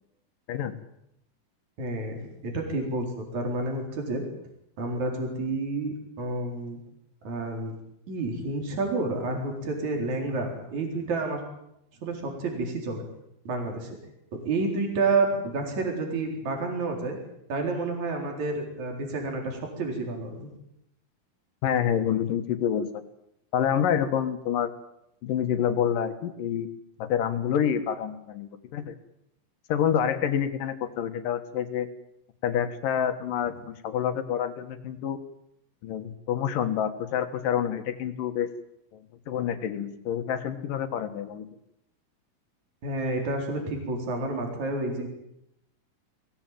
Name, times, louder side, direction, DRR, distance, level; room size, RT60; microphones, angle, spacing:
voice 1, 1.8-2.2 2.4-4.2 4.8-6.8 7.2-7.7 8.1-11.4 12.0-13.1 13.5-14.0 14.5-17.2 17.5-20.5 42.8-45.1, right 3 dB, 50° right, 2 dB, 5.4 m, -29 dB
voice 2, 21.6-23.0 23.5-24.7 25.2-26.7 27.0-28.9 29.7-31.9 32.4-35.2 35.8-38.5 38.9-39.0 39.3-41.5, left 9 dB, 70° left, 8 dB, 3.0 m, -27 dB
23.5 x 18.0 x 9.2 m, 0.79 s
omnidirectional pair, 4.3 m